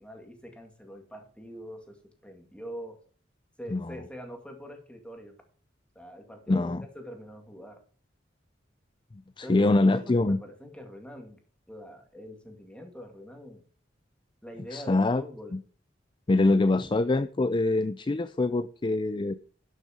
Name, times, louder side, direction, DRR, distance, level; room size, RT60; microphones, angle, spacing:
voice 1, 0.0-3.0 3.6-5.3 6.0-7.8 9.4-11.4 11.7-13.6 14.4-15.6 16.7-16.9, equal, 5° left, 4 dB, 2.2 m, -44 dB
voice 2, 6.5-6.8 9.4-10.4 14.7-15.2 15.5-15.6 16.3-19.3, left 2 dB, 25° left, 13 dB, 0.4 m, -24 dB
12.0 x 6.6 x 4.9 m, 0.42 s
head